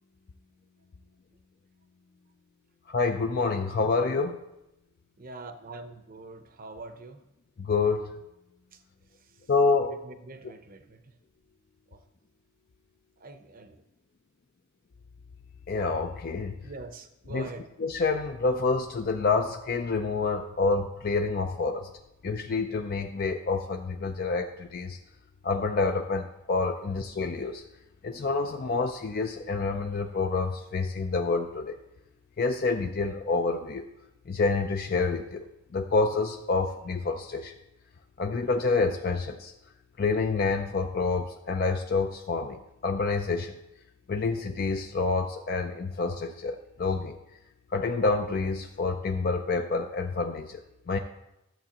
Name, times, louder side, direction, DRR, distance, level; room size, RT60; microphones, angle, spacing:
voice 1, 2.9-4.4 7.6-8.1 9.5-10.0 15.7-16.6 17.3-17.5 17.8-21.9 22.2-25.0 25.4-27.6 28.0-31.8 32.4-33.9 34.3-35.5 35.7-37.5 38.2-39.5 40.0-43.5 44.1-47.2 47.7-50.6 50.9-51.0, left 4 dB, 45° left, 5 dB, 0.4 m, -28 dB
voice 2, 5.2-7.2 8.7-8.8 9.2-9.3 9.8-11.1 11.9-12.0 13.2-13.8 16.6-17.7, right 3 dB, 40° right, 8 dB, 0.7 m, -44 dB
13.0 x 7.3 x 2.9 m, 0.90 s
head